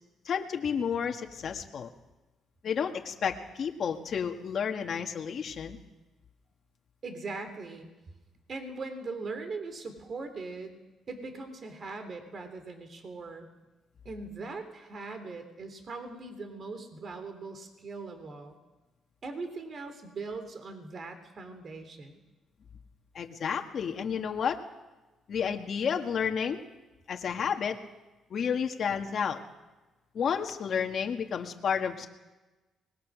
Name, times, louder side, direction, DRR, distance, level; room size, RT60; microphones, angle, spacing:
voice 1, 0.3-1.9 2.6-5.8 23.2-24.6 25.3-26.6 27.1-27.8 28.3-29.4 30.1-32.1, left 7 dB, 55° left, 4 dB, 1.8 m, -31 dB
voice 2, 7.0-7.9 8.5-10.8 11.1-13.5 14.0-18.6 19.2-22.2, right 3 dB, 45° right, 8 dB, 3.3 m, -40 dB
25.0 x 21.0 x 6.3 m, 1.1 s
cardioid pair, 90°, 0 cm